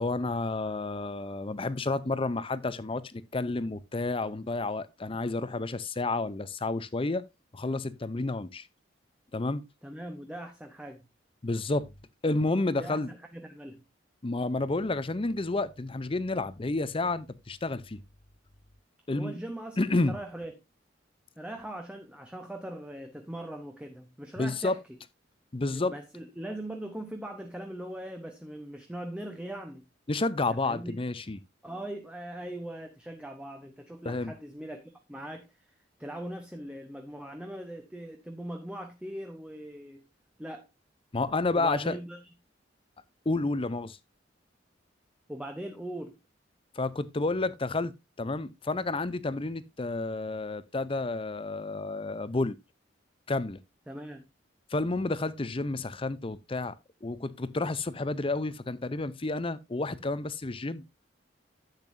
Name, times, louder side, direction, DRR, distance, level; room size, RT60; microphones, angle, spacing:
voice 1, 0.0-7.2 7.5-8.7 9.3-9.6 11.4-11.9 12.2-13.1 14.2-18.0 19.1-19.3 19.8-20.2 24.4-24.8 25.5-25.9 30.1-31.4 34.0-34.3 41.1-42.0 43.3-44.0 46.7-52.6 53.3-53.6 54.7-56.7 57.0-60.8, left 2 dB, 30° left, 0.6 m, -30 dB
voice 2, 9.8-11.0 12.8-13.8 19.1-20.5 21.4-24.8 25.7-29.8 30.5-30.9 31.6-35.7 36.0-40.0 40.4-40.7 41.6-42.2 45.3-46.2 53.9-54.2, right 1 dB, 5° right, 0.9 m, -40 dB
10.5 x 8.1 x 2.6 m
head